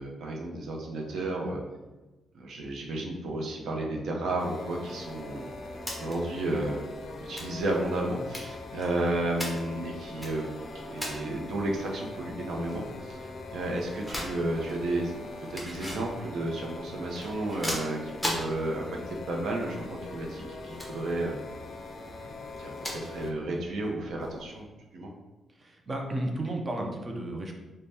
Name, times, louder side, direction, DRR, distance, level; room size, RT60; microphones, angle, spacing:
voice 1, 0.0-1.6 2.3-5.5 6.0-6.8 7.2-10.5 10.7-15.2 15.5-21.3 22.6-24.7 24.9-25.1, right 2 dB, 70° right, 0 dB, 0.6 m, -32 dB
sound 1, 4.4-23.3, left 2 dB, 45° left, 0.4 m, -42 dB
sound 2, 5.7-24.6, equal, ahead, 0.8 m, -42 dB
voice 2, 25.5-27.5, right 1 dB, 25° right, 2 dB, 0.5 m, -33 dB
4.0 x 2.2 x 3.3 m, 1.1 s
cardioid pair, 135°, 0 cm